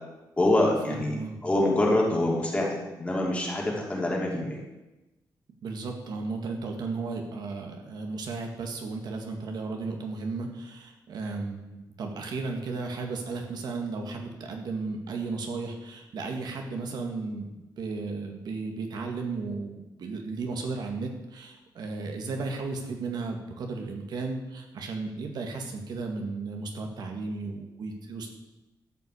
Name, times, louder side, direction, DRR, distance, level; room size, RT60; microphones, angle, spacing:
voice 1, 0.4-1.2 1.4-4.6, left 1 dB, 15° left, -2 dB, 3.1 m, -25 dB
voice 2, 0.9-1.4 5.6-17.5 17.8-28.3, right 3 dB, 70° right, 3 dB, 1.9 m, -34 dB
13.0 x 5.7 x 8.3 m, 1.0 s
wide cardioid pair, 145°, 7 cm